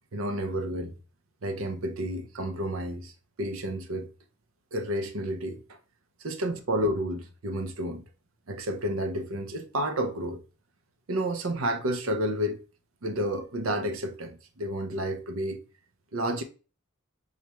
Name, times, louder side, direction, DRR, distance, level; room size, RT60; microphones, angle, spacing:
voice 1, 0.1-1.0 1.4-3.1 3.4-4.1 4.7-5.8 6.2-8.0 8.5-10.4 11.1-12.6 13.0-15.6 16.1-16.4, equal, 70° right, 0.6 m, -30 dB
4.3 x 2.4 x 2.9 m
head